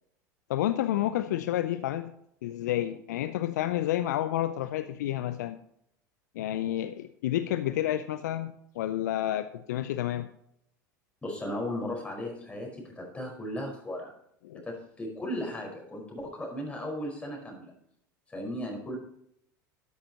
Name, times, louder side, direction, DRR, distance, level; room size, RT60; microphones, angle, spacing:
voice 1, 0.5-2.1 2.4-5.6 6.3-10.3 14.4-14.6, left 12 dB, 65° left, 12 dB, 0.6 m, -30 dB
voice 2, 11.2-14.1 14.5-17.7 18.3-19.0, left 1 dB, 10° left, 0 dB, 4.9 m, -36 dB
13.0 x 11.0 x 3.0 m, 0.72 s
figure-of-eight pair, 75°, 10 cm